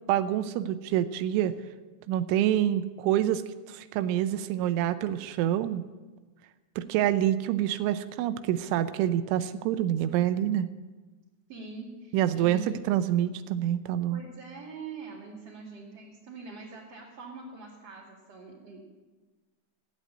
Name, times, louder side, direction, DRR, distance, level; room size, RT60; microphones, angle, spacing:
voice 1, 0.1-1.5 2.1-3.4 3.7-5.8 6.8-10.7 12.1-14.2, right 11 dB, 90° right, 11 dB, 3.1 m, -27 dB
voice 2, 11.5-12.7 14.1-18.9, right 4 dB, 40° right, -6 dB, 2.8 m, -43 dB
16.0 x 8.2 x 9.6 m, 1.2 s
omnidirectional pair, 5.4 m